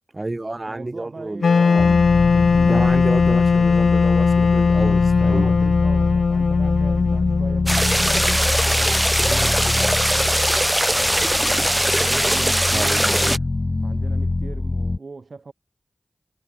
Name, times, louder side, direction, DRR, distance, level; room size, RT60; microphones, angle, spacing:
voice 1, 0.1-2.0 2.6-5.5 12.7-13.4, right 2 dB, 40° right, 4.9 m, -30 dB
voice 2, 0.7-2.0 2.2-2.9 5.3-10.4 10.9-12.9 13.8-15.5, right 4 dB, 70° right, 4.6 m, -39 dB
Wind instrument woodwind instrument, 1.4-8.4, left 5 dB, 90° left, 0.9 m, -18 dB
sound 1, 1.8-15.0, left 2 dB, 45° left, 1.3 m, -25 dB
sound 2, 7.7-13.4, equal, 10° right, 1.1 m, -20 dB
cardioid pair, 40°, 0 cm